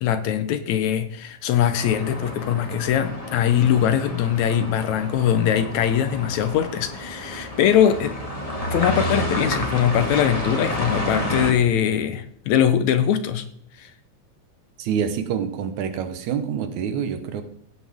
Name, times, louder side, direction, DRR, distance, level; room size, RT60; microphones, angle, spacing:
voice 1, 0.0-8.2 8.7-13.5 13.8-13.9, left 9 dB, 75° left, 11 dB, 1.9 m, -21 dB
sound 1, 1.7-11.5, left 1 dB, 15° left, 1.2 m, -30 dB
voice 2, 14.8-17.4, right 7 dB, 75° right, 9 dB, 2.3 m, -26 dB
16.0 x 8.5 x 3.6 m, 0.66 s
omnidirectional pair, 3.6 m